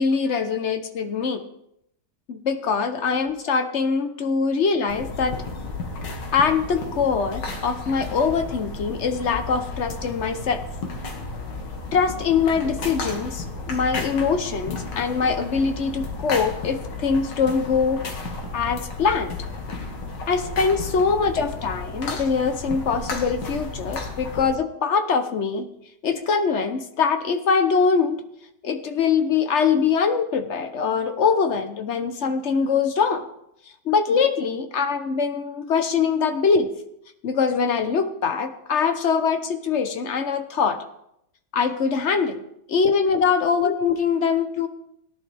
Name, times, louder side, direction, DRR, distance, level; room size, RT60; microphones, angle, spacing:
voice 1, 0.0-1.4 2.3-5.3 6.3-10.6 11.9-18.0 18.5-19.3 20.3-25.7 26.0-28.2 28.6-33.3 33.8-36.7 37.2-40.8 41.5-42.4 42.7-44.7, left 5 dB, 50° left, 8 dB, 1.0 m, -23 dB
sound 1, 4.9-24.5, left 3 dB, 80° left, 2.1 m, -33 dB
17.5 x 11.0 x 3.4 m, 0.76 s
omnidirectional pair, 1.9 m